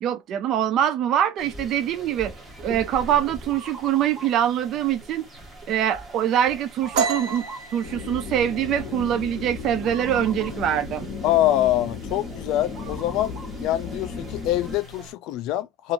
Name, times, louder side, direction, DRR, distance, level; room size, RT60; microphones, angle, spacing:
voice 1, 0.0-2.3 2.6-5.2 5.7-7.5 7.7-11.1, right 10 dB, 40° right, 0.3 m, -24 dB
sound 1, 1.4-15.1, right 1 dB, 15° right, 0.9 m, -42 dB
sound 2, 6.9-10.4 10.7-11.0 11.4-11.9 12.2-13.0, right 6 dB, 65° right, 1.1 m, -30 dB
sound 3, 7.8-14.8, left 4 dB, 25° left, 0.8 m, -35 dB
voice 2, 11.2-13.3 13.6-15.9, left 13 dB, 55° left, 0.3 m, -24 dB
2.9 x 2.4 x 2.5 m
cardioid pair, 160°, 0 cm